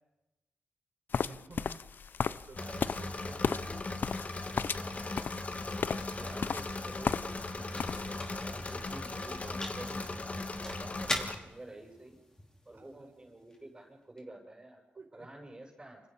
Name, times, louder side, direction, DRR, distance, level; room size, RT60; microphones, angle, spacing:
sound 1, 1.1-7.5 7.8-8.3, left 6 dB, 65° left, 0.8 m, -35 dB
voice 1, 1.1-1.8 2.3-3.8 12.7-13.1 15.0-15.3, right 4 dB, 55° right, 3 dB, 5.9 m, -52 dB
Engine / Mechanisms, 2.6-11.3, left 2 dB, 40° left, 2.8 m, -38 dB
voice 2, 6.2-12.2 12.7-14.8 15.1-16.0, right 1 dB, 25° right, -1 dB, 7.8 m, -49 dB
sound 2, 6.3-14.2, left 1 dB, 20° left, 5.9 m, -44 dB
29.0 x 27.5 x 5.7 m, 1.0 s
cardioid pair, 65°, 4 cm